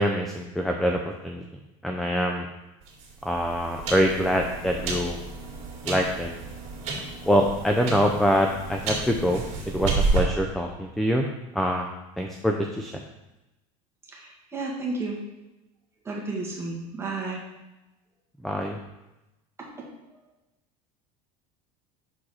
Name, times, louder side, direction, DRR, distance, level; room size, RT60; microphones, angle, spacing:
voice 1, 0.0-1.4 1.8-2.5 3.2-5.2 5.9-6.3 7.3-9.4 9.7-11.3 11.5-11.9 12.2-13.0 18.4-18.8, equal, ahead, 2 dB, 0.4 m, -24 dB
sound 1, 2.8-10.2, right 3 dB, 45° right, 2.2 m, -31 dB
voice 2, 14.1-15.2 16.1-17.4, right 3 dB, 15° right, -3 dB, 1.6 m, -32 dB
6.3 x 4.6 x 4.2 m, 0.99 s
supercardioid pair, 135°, 16 cm